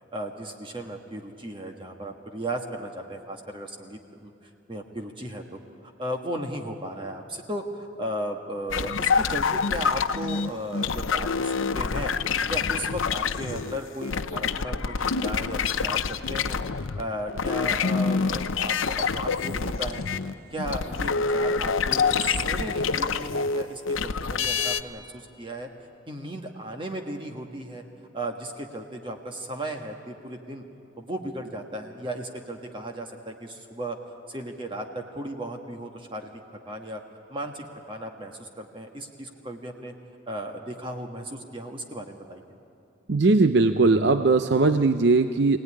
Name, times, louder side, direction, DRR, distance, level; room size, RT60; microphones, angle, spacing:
voice 1, 0.1-5.6 6.0-12.1 12.5-16.6 17.0-20.0 20.5-25.7 26.1-27.8 28.1-30.6 31.0-34.0 34.3-36.3 36.7-37.0 37.3-39.9 40.3-42.4, right 1 dB, 25° right, 3 dB, 1.3 m, -35 dB
sound 1, 8.7-17.0 17.3-24.8, left 5 dB, 85° left, 0.7 m, -26 dB
voice 2, 43.1-45.6, right 3 dB, 55° right, 9 dB, 0.6 m, -19 dB
24.5 x 17.5 x 9.8 m, 2.7 s
head